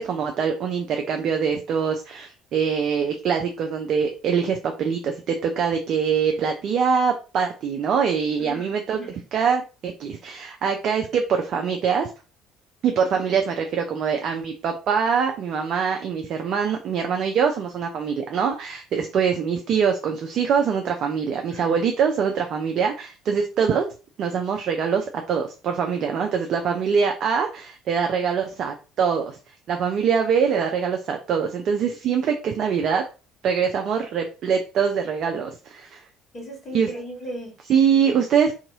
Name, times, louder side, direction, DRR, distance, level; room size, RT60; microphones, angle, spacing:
voice 1, 0.0-9.0 9.3-12.1 12.8-23.9 24.2-29.4 29.7-33.0 33.4-36.0 36.7-36.9 37.7-38.5, right 6 dB, 45° right, 3 dB, 0.4 m, -23 dB
voice 2, 8.4-9.2 21.5-21.8 36.3-37.5, equal, 35° left, -1 dB, 1.6 m, -37 dB
2.7 x 2.6 x 2.7 m, 0.33 s
figure-of-eight pair, 55°, 0 cm